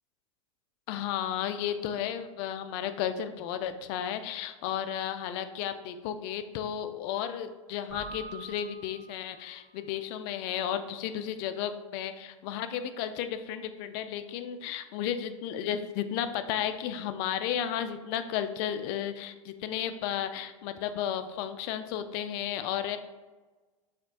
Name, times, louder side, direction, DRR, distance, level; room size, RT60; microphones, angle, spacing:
voice 1, 0.9-23.0, left 9 dB, 50° left, 10 dB, 0.4 m, -33 dB
Keyboard (musical), 7.9-9.7, right 2 dB, 10° right, 1.1 m, -45 dB
7.1 x 2.5 x 2.7 m, 1.3 s
hypercardioid pair, 90°, 17 cm